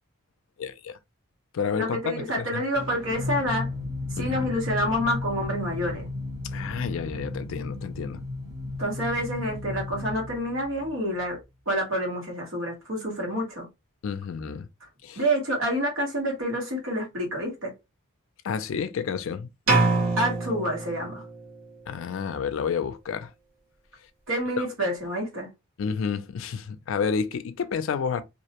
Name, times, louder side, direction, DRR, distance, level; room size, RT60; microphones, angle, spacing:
voice 1, 0.6-1.0 1.5-2.6 4.2-4.5 6.5-8.2 14.0-14.7 15.0-15.2 18.4-19.5 21.9-23.3 24.6-24.7 25.8-28.2, left 6 dB, 65° left, 0.3 m, -30 dB
voice 2, 1.8-3.7 4.1-6.1 8.8-11.4 11.7-13.7 15.2-17.7 20.2-21.2 24.3-25.5, equal, 65° right, 1.2 m, -28 dB
sound 1, 2.7-11.4, left 2 dB, 25° right, 1.0 m, -34 dB
sound 2, 19.7-21.6, right 3 dB, 85° right, 1.0 m, -25 dB
2.4 x 2.0 x 2.8 m
head